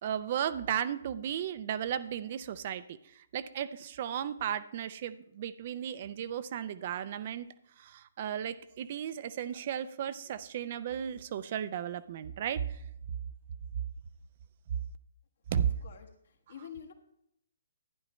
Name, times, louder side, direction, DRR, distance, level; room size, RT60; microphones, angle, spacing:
voice 1, 0.0-7.5 7.8-12.8 15.5-15.7, right 9 dB, 45° right, 13 dB, 0.5 m, -35 dB
voice 2, 15.5-16.1 16.5-16.9, left 8 dB, 60° left, 3 dB, 1.5 m, -47 dB
11.5 x 9.9 x 3.1 m, 0.75 s
figure-of-eight pair, 135°, 0 cm